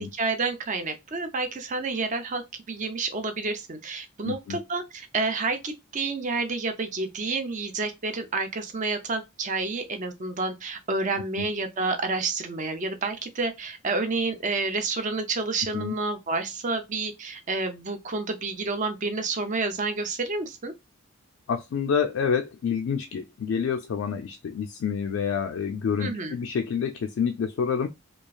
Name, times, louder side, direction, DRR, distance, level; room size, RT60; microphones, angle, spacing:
voice 1, 0.0-2.4 2.7-20.7 26.0-26.3, right 3 dB, 35° right, 0.5 m, -29 dB
voice 2, 4.2-4.6 11.4-11.5 15.7-15.9 21.5-27.9, left 6 dB, 65° left, 0.3 m, -28 dB
3.0 x 2.3 x 2.3 m
head